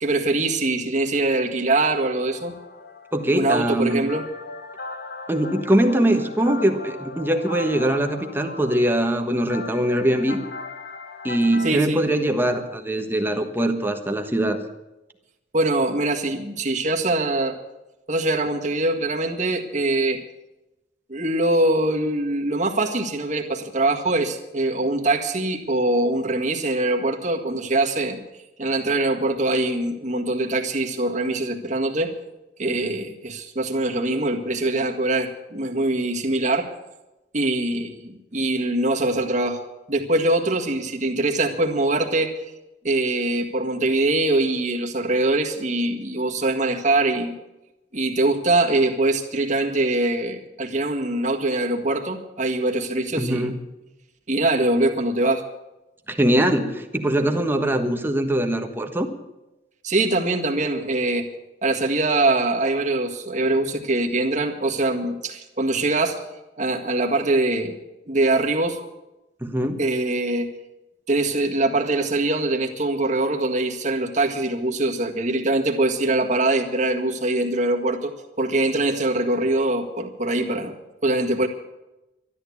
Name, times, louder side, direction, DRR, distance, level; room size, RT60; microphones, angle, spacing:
voice 1, 0.0-2.6 3.3-4.3 11.6-12.1 15.5-17.6 18.1-20.2 21.1-28.2 28.6-32.1 32.6-36.7 37.3-39.6 39.9-42.3 42.8-47.3 47.9-53.5 54.3-55.4 59.8-61.3 61.6-66.2 66.6-67.8 68.1-68.8 69.8-70.5 71.1-78.1 78.4-80.7 81.0-81.5, right 2 dB, 45° right, 2 dB, 1.8 m, -23 dB
sound 1, 2.3-11.7, left 3 dB, 60° left, 1.2 m, -38 dB
voice 2, 3.1-4.1 5.3-10.4 11.2-14.6 53.2-53.6 56.1-59.1 69.4-69.8, right 1 dB, 10° right, 5 dB, 1.4 m, -22 dB
12.5 x 11.5 x 8.5 m, 0.99 s
head